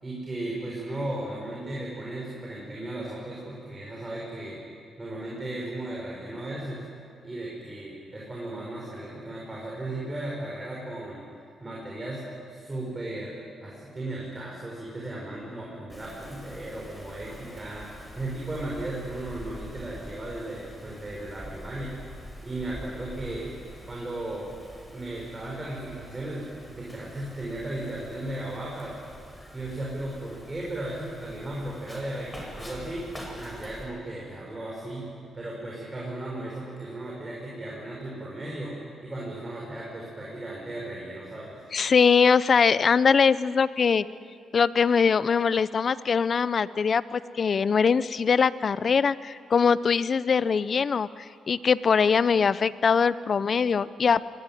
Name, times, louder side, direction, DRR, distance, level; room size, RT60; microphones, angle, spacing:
voice 1, 0.0-4.6 5.0-6.8 7.2-11.2 11.6-22.0 22.4-23.5 23.9-24.5 24.9-29.0 29.5-33.1 33.3-41.6, right 1 dB, 20° right, -4 dB, 6.4 m, -36 dB
Wind, 15.9-33.8, equal, 5° left, 7.0 m, -45 dB
voice 2, 41.7-44.0 44.5-51.1 51.5-54.2, left 6 dB, 50° left, 17 dB, 0.7 m, -22 dB
23.0 x 20.0 x 9.4 m, 2.4 s
cardioid pair, 85°, 0 cm